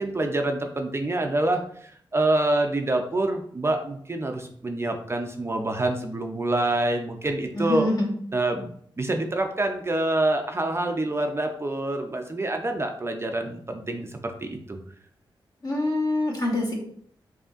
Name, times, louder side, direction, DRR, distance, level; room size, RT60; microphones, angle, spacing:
voice 1, 0.0-7.9 8.3-8.7 9.0-14.8, right 2 dB, 30° right, 4 dB, 0.5 m, -26 dB
voice 2, 7.5-8.1 15.6-16.8, left 1 dB, 45° left, -2 dB, 1.4 m, -25 dB
5.0 x 2.7 x 2.5 m, 0.62 s
cardioid pair, 75°, 9 cm